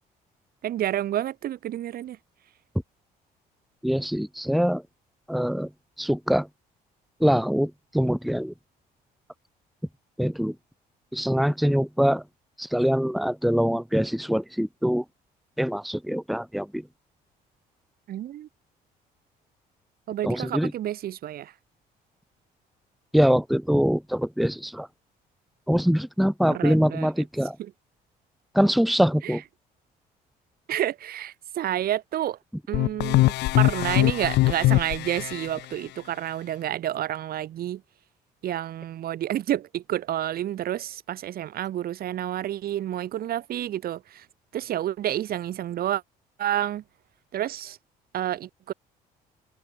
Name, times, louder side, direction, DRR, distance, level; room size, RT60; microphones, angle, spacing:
voice 1, 0.6-2.2 18.1-18.5 20.1-21.5 26.5-27.1 27.6-27.7 29.2-29.4 30.7-32.4 32.7-37.8 38.4-44.3 44.5-46.0 46.4-46.8 47.3-47.8 48.1-48.7, right 12 dB, 65° right, 3.8 m, -29 dB
voice 2, 3.8-4.8 5.3-5.7 6.0-6.5 7.2-8.5 10.2-10.5 11.1-12.2 12.6-15.0 15.6-16.8 20.2-20.7 23.1-24.9 25.7-27.6 28.5-29.4, equal, ahead, 1.7 m, -23 dB
sound 1, 32.7-35.5, left 19 dB, 85° left, 1.2 m, -22 dB
open air
cardioid pair, 110°, 17 cm